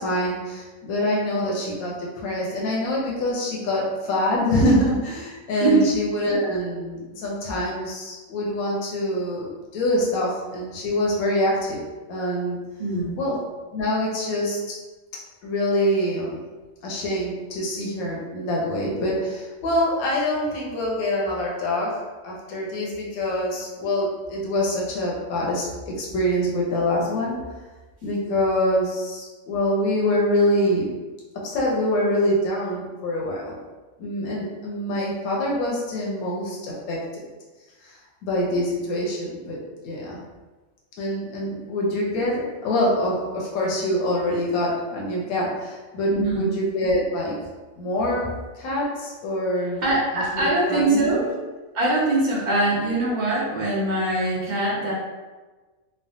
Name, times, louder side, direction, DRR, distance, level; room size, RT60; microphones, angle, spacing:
voice 1, 0.0-11.8 12.1-12.6 13.2-13.4 13.7-14.6 15.4-16.4 16.8-22.0 22.2-27.4 28.0-31.0 31.4-33.6 34.0-37.0 37.8-38.0 38.2-39.6 39.8-40.2 41.0-47.3 47.8-49.8 50.1-51.2, left 1 dB, 85° left, -3 dB, 1.1 m, -25 dB
voice 2, 12.8-13.2 46.1-46.5 49.8-51.3 51.7-54.9, right 2 dB, 50° right, -5 dB, 0.5 m, -22 dB
3.2 x 2.0 x 2.5 m, 1.3 s
omnidirectional pair, 1.5 m